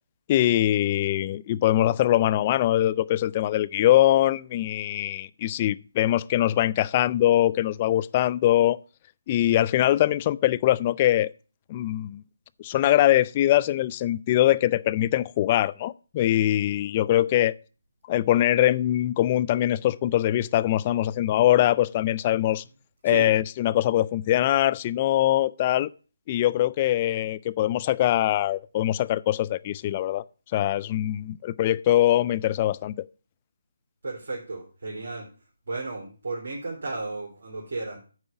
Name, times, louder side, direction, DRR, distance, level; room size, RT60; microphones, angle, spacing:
voice 1, 0.3-8.8 9.3-11.3 11.7-12.2 12.6-17.5 18.1-22.6 23.0-25.9 26.3-30.2 30.5-32.9, left 13 dB, 30° left, 0.3 m, -22 dB
voice 2, 34.0-35.3 35.7-38.0, right 3 dB, 55° right, 2.9 m, -33 dB
9.0 x 4.8 x 6.9 m
figure-of-eight pair, 150°, 0 cm